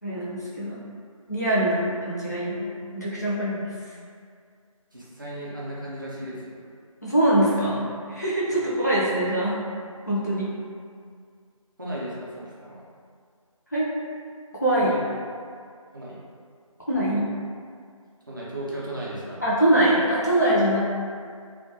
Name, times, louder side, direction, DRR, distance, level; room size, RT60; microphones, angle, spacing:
voice 1, 0.0-0.8 1.3-2.7 2.9-3.6 7.0-9.5 10.1-10.5 13.7-13.9 14.6-14.9 16.9-17.2 19.4-20.8, right 1 dB, 30° left, -8 dB, 0.4 m, -23 dB
voice 2, 4.9-6.6 11.8-12.8 14.8-15.0 15.9-16.2 18.3-19.4, right 1 dB, 35° right, -6 dB, 0.4 m, -35 dB
2.2 x 2.1 x 2.6 m, 2.1 s
figure-of-eight pair, 165°, 18 cm